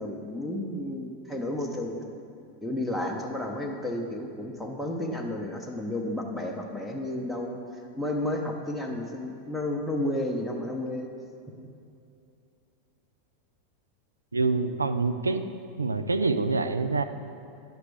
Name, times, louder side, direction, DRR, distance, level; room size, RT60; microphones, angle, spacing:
voice 1, 0.0-2.1 2.6-7.6 8.0-11.1, left 1 dB, ahead, -1 dB, 0.7 m, -32 dB
voice 2, 14.3-15.4 15.8-17.0, right 3 dB, 85° right, 10 dB, 0.3 m, -26 dB
9.4 x 5.9 x 3.4 m, 2.6 s
figure-of-eight pair, 90°, 0 cm